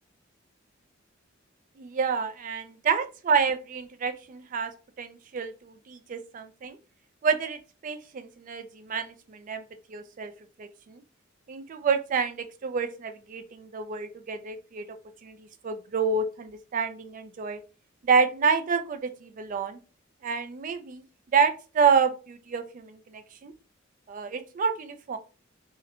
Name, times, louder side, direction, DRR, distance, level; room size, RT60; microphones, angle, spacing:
voice 1, 1.8-4.7 5.0-6.8 7.2-9.6 9.9-10.3 10.6-11.0 11.5-14.9 15.2-17.6 18.0-19.8 20.2-21.0 21.3-23.5 24.1-25.2, right 5 dB, 40° right, 0.3 m, -28 dB
2.7 x 2.1 x 2.5 m
head